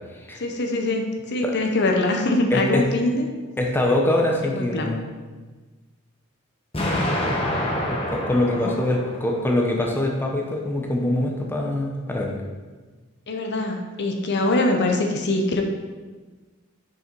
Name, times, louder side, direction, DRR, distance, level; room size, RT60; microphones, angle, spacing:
voice 1, 0.3-3.3 4.4-4.9 8.5-8.8 13.3-15.6, left 2 dB, 55° left, 2 dB, 0.8 m, -23 dB
voice 2, 2.5-2.8 3.6-5.0 7.9-12.4, left 1 dB, 10° left, 0 dB, 0.8 m, -24 dB
Explosion, 6.7-9.7, left 1 dB, 25° left, 1.2 m, -27 dB
6.3 x 5.9 x 4.6 m, 1.3 s
head